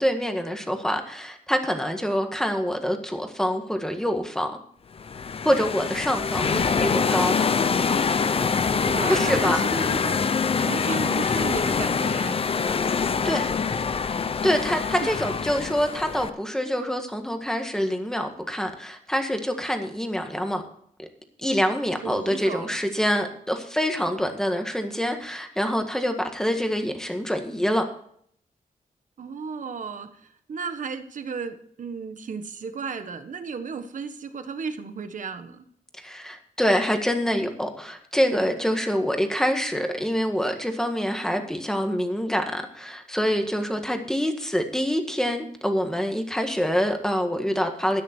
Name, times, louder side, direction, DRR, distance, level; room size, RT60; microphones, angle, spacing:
voice 1, 0.0-4.6 5.4-7.4 9.0-9.9 13.2-13.5 14.4-20.6 21.4-27.8 36.0-48.0, equal, 5° left, 5 dB, 1.7 m, -26 dB
sound 1, 5.0-16.3, left 5 dB, 40° left, 0.6 m, -25 dB
voice 2, 8.9-10.2 10.6-12.4 15.0-15.1 22.0-22.7 29.2-35.7, right 5 dB, 65° right, 9 dB, 1.4 m, -34 dB
13.0 x 9.8 x 4.5 m, 0.64 s
wide cardioid pair, 150°, 14 cm